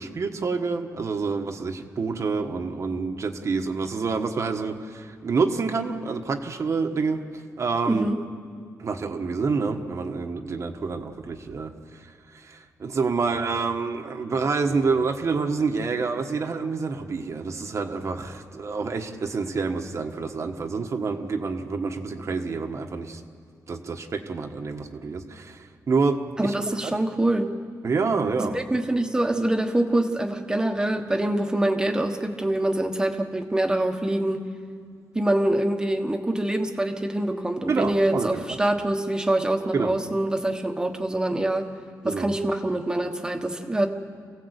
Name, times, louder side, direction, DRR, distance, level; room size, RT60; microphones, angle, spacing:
voice 1, 0.0-8.1 8.8-23.2 23.7-26.9 27.8-28.6 37.7-38.4 39.7-40.0 42.0-42.3, right 4 dB, 50° right, 4 dB, 1.4 m, -28 dB
voice 2, 7.8-8.2 26.4-27.5 28.4-34.4 35.1-41.7 42.0-43.9, right 1 dB, 10° right, 4 dB, 1.5 m, -25 dB
27.0 x 16.5 x 8.3 m, 2.1 s
wide cardioid pair, 135°, 7 cm